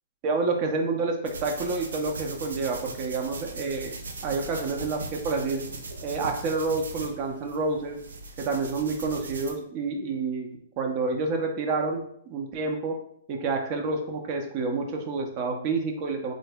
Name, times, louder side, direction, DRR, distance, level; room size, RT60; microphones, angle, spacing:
voice 1, 0.2-4.0 4.2-5.6 6.0-8.0 8.4-10.5 10.8-13.0 13.3-16.3, right 3 dB, 40° right, 3 dB, 0.6 m, -28 dB
sound 1, 1.3-9.5, right 3 dB, 85° right, 0.5 m, -39 dB
2.8 x 2.0 x 3.4 m, 0.67 s
hypercardioid pair, 125°, 0 cm